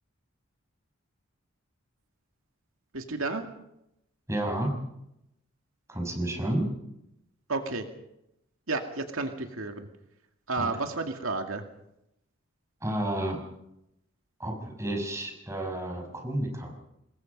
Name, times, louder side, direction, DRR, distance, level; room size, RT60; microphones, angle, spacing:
voice 1, 2.9-3.5 7.5-7.8 8.7-9.9 10.5-11.6, right 3 dB, 85° right, 5 dB, 2.2 m, -31 dB
voice 2, 4.3-4.7 5.9-6.7 10.6-10.7 12.8-13.4 14.4-16.8, right 1 dB, 15° right, 2 dB, 5.6 m, -31 dB
26.5 x 21.0 x 5.3 m, 0.83 s
head